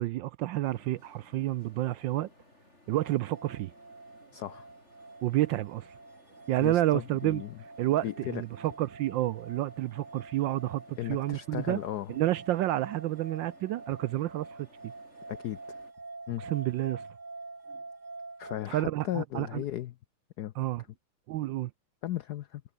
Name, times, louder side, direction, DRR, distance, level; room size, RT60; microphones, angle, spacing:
voice 1, 0.0-2.3 2.9-3.7 5.2-5.9 6.5-7.4 7.8-11.8 12.1-14.5 14.8-14.9 16.4-17.0 18.7-19.6 20.6-20.8 21.3-21.7, right 15 dB, 75° right, 1.1 m, -29 dB
sound 1, 0.6-15.9, left 1 dB, 30° left, 7.3 m, -60 dB
sound 2, 3.0-18.6, right 3 dB, 35° right, 3.7 m, -47 dB
voice 2, 4.3-4.7 6.6-7.5 8.0-8.4 11.0-12.1 15.3-15.6 16.3-16.4 18.4-19.9 20.4-20.5 22.0-22.6, left 13 dB, 75° left, 0.9 m, -35 dB
omnidirectional pair, 2.4 m